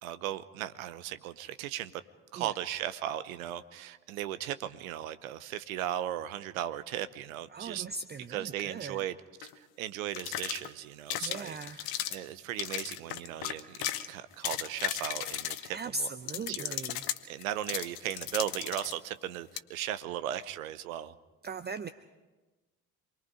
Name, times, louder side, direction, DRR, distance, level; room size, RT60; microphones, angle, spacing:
voice 1, 0.0-1.9 2.3-7.9 8.3-16.1 16.5-16.8 17.0-21.1, right 12 dB, 70° right, 15 dB, 1.0 m, -37 dB
voice 2, 7.5-9.1 11.2-11.8 15.7-17.0 21.4-21.9, right 3 dB, 25° right, 12 dB, 0.8 m, -39 dB
sound 1, 9.4-9.5 10.1-10.7 11.1-12.2 12.6-14.1 14.3-15.8 16.3-19.0 19.6-19.7, left 13 dB, 55° left, 1.2 m, -35 dB
27.5 x 21.0 x 5.1 m, 1.2 s
figure-of-eight pair, 55°, 43 cm